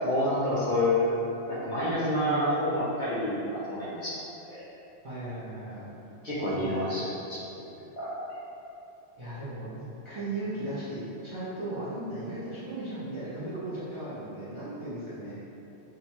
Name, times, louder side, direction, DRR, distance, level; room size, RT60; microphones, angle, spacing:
voice 1, 0.0-1.1 1.5-4.2 4.5-4.6 6.2-7.5 8.0-8.1, left 1 dB, 55° left, -9 dB, 0.6 m, -28 dB
voice 2, 1.8-2.5 5.0-5.9 6.6-6.8 9.2-9.7 10.0-15.4, right 2 dB, 45° right, -13 dB, 0.4 m, -36 dB
2.8 x 2.2 x 2.9 m, 2.9 s
omnidirectional pair, 1.2 m